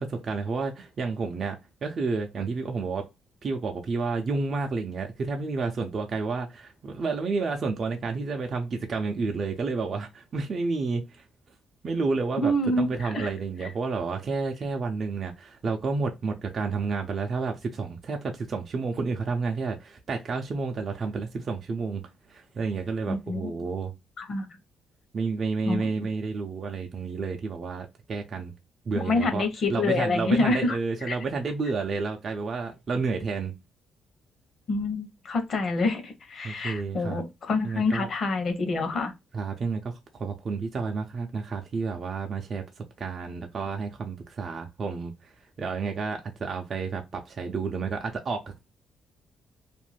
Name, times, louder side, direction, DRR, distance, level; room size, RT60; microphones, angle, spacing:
voice 1, 0.0-3.1 3.4-11.3 11.8-23.9 25.1-28.5 28.9-33.5 36.4-37.2 37.6-38.1 39.3-48.6, right 4 dB, 50° right, 0.5 m, -30 dB
voice 2, 12.4-13.3 23.1-23.5 24.2-24.5 25.7-26.1 28.9-30.8 31.1-31.2 34.7-39.1, left 2 dB, 55° left, 0.8 m, -27 dB
2.5 x 2.2 x 3.2 m
cardioid pair, 90°, 0 cm